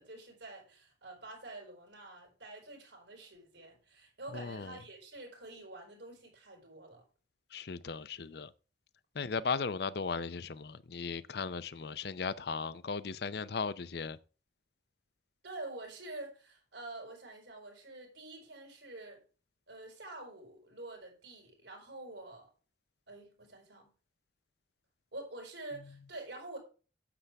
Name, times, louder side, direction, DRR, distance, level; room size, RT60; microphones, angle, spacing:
voice 1, 0.0-7.0 15.4-19.2 19.7-22.5 23.1-23.9 25.1-26.6, right 2 dB, 80° right, 5.0 m, -47 dB
voice 2, 4.3-4.8 7.5-8.5 9.1-14.2, left 5 dB, 60° left, 0.5 m, -37 dB
9.8 x 8.2 x 3.4 m
head